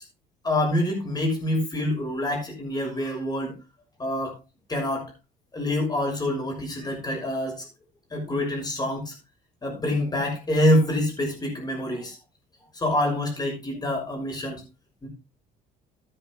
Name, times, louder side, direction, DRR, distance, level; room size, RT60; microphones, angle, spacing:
voice 1, 0.4-3.5 4.0-4.3 4.7-5.1 5.5-7.7 8.1-9.1 9.6-12.1 12.8-14.6 15.0-15.1, left 1 dB, 25° left, 2 dB, 6.1 m, -26 dB
13.5 x 10.5 x 3.2 m, 0.27 s
cardioid pair, 110°, 17 cm